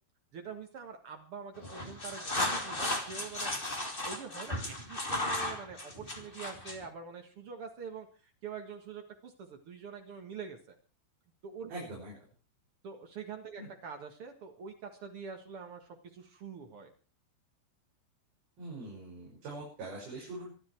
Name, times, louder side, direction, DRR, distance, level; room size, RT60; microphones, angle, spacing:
voice 1, 0.3-3.5 4.0-10.8 11.4-11.9 12.8-16.9, right 6 dB, 85° right, 4 dB, 1.2 m, -45 dB
sound 1, 1.6-6.8, left 1 dB, 20° left, 1.4 m, -35 dB
voice 2, 11.7-12.2 13.6-13.7 18.6-20.5, right 2 dB, 50° right, -3 dB, 8.0 m, -43 dB
26.0 x 10.5 x 4.6 m, 0.38 s
omnidirectional pair, 5.5 m